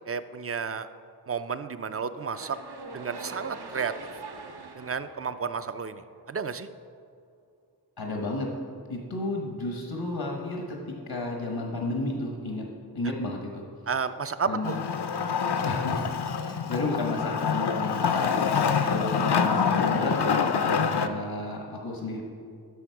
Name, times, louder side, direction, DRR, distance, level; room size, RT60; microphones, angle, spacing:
voice 1, 0.1-0.9 1.3-2.6 2.9-3.9 4.8-6.0 6.3-6.7 13.9-14.8, right 6 dB, 35° right, 12 dB, 0.4 m, -31 dB
sound 1, 2.1-6.3, right 3 dB, 70° right, 0.8 m, -43 dB
voice 2, 8.0-8.5 8.9-12.7 12.9-13.6 14.5-14.9 15.6-16.1 16.4-22.2, left 2 dB, 90° left, 0 dB, 1.2 m, -32 dB
Wood, 14.6-21.1, left 6 dB, 70° left, 0.6 m, -26 dB
11.5 x 6.2 x 4.6 m, 2.3 s
wide cardioid pair, 50°, 41 cm